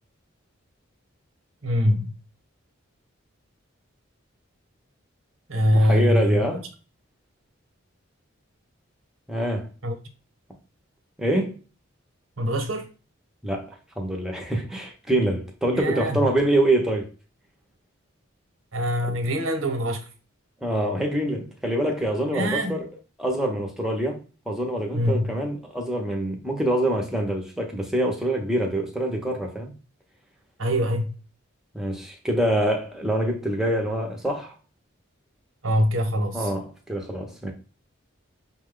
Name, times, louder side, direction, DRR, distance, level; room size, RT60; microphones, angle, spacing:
voice 1, 1.6-2.1 5.5-6.4 9.8-9.9 12.4-12.9 15.7-16.2 18.7-20.1 22.3-22.8 24.9-25.3 30.6-31.1 35.6-36.5, equal, 85° right, 1.0 m, -23 dB
voice 2, 5.7-6.6 9.3-9.7 11.2-11.6 13.4-17.1 19.1-19.2 20.6-22.9 23.2-24.2 24.5-29.7 31.7-34.5 36.3-37.5, right 1 dB, ahead, 0.7 m, -25 dB
5.8 x 2.3 x 3.6 m
head